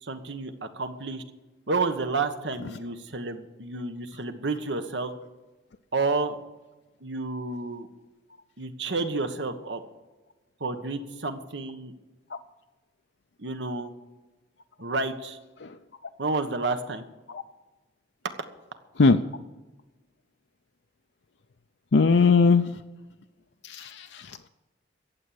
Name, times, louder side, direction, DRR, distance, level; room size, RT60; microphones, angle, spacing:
voice 1, 0.0-1.2 1.7-5.1 5.9-6.4 7.0-7.9 8.6-9.8 10.6-11.9 13.4-13.9 14.8-15.4 16.2-17.0, right 3 dB, 75° right, 8 dB, 1.3 m, -30 dB
voice 2, 21.9-22.7 23.6-24.5, left 4 dB, 75° left, 6 dB, 0.6 m, -21 dB
14.5 x 8.5 x 7.9 m, 1.1 s
head